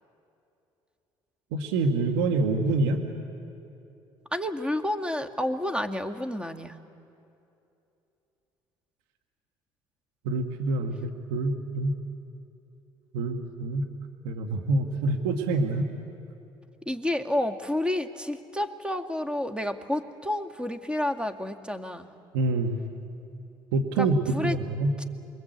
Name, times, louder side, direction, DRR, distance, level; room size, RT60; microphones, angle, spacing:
voice 1, 1.5-3.0 10.2-11.9 13.1-13.8 14.2-15.9 22.3-22.8 23.7-24.9, right 2 dB, 85° right, 3 dB, 2.0 m, -26 dB
voice 2, 4.3-6.8 16.9-22.1 24.0-24.6 25.0-25.1, left 1 dB, 10° right, 6 dB, 2.1 m, -30 dB
28.5 x 22.0 x 8.3 m, 2.8 s
hypercardioid pair, 65°, 12 cm